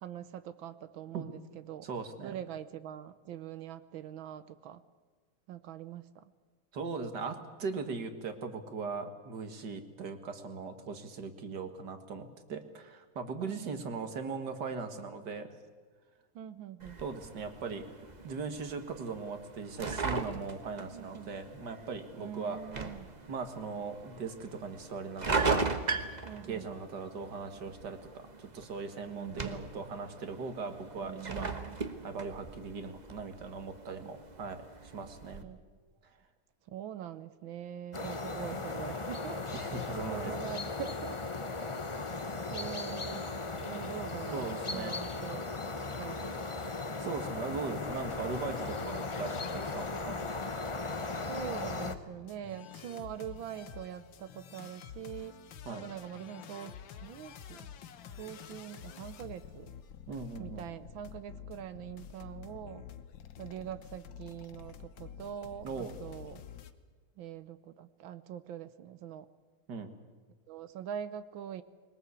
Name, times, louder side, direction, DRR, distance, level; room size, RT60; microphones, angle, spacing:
voice 1, 0.0-1.9 2.2-4.8 5.5-6.2 13.4-13.8 16.3-17.0 20.9-21.3 22.2-23.1 26.2-26.7 29.2-29.6 31.0-31.8 34.0-34.2 35.4-35.6 36.7-39.4 40.1-41.2 42.5-43.3 43.6-45.4 46.0-46.4 51.3-55.4 55.7-57.7 58.2-59.7 60.4-62.9 63.4-66.4 67.2-69.3 70.5-71.6, right 10 dB, 80° right, 13 dB, 1.6 m, -43 dB
voice 2, 1.8-2.3 6.7-15.5 17.0-17.8 18.2-22.6 23.3-25.6 26.5-31.5 32.0-34.6 34.9-35.5 39.5-40.3 44.3-44.9 47.0-50.2 55.7-55.9 60.1-60.7 65.6-65.9 69.7-69.9, right 4 dB, 60° right, 8 dB, 2.2 m, -39 dB
sound 1, 16.8-35.4, right 4 dB, 25° right, 1.1 m, -39 dB
sound 2, 37.9-51.9, left 3 dB, 30° left, 0.6 m, -37 dB
sound 3, 47.8-66.7, left 8 dB, 75° left, 1.8 m, -49 dB
21.5 x 19.5 x 8.3 m, 1.5 s
omnidirectional pair, 2.2 m